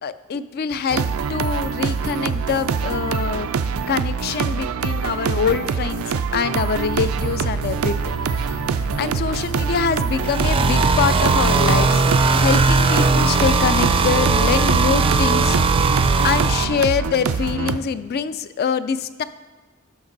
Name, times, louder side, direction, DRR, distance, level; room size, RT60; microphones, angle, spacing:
voice 1, 0.0-3.5 3.8-8.0 8.2-8.6 9.0-12.0 12.4-15.6 15.9-19.2, left 6 dB, 50° left, 14 dB, 0.4 m, -24 dB
sound 1, 0.9-17.8, right 6 dB, 85° right, 0.4 m, -25 dB
sound 2, 6.7-16.0, right 1 dB, 80° left, 1.1 m, -34 dB
sound 3, 10.2-16.6, right 3 dB, 25° right, 0.4 m, -18 dB
11.5 x 5.9 x 3.9 m, 1.2 s
head